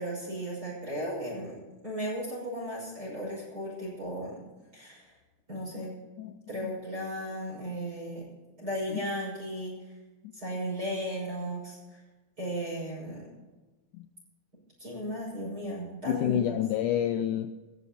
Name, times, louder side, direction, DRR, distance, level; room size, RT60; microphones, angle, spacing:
voice 1, 0.0-1.5 1.8-4.4 4.7-5.0 5.5-5.9 6.5-8.2 8.6-9.7 10.3-12.0 12.4-13.2 14.8-16.6, equal, 25° right, -6 dB, 6.5 m, -35 dB
voice 2, 5.8-6.8 8.9-9.0 10.2-10.3 13.9-14.1 16.1-17.5, left 11 dB, 90° left, 10 dB, 1.8 m, -30 dB
18.5 x 14.0 x 4.3 m, 1.2 s
omnidirectional pair, 4.3 m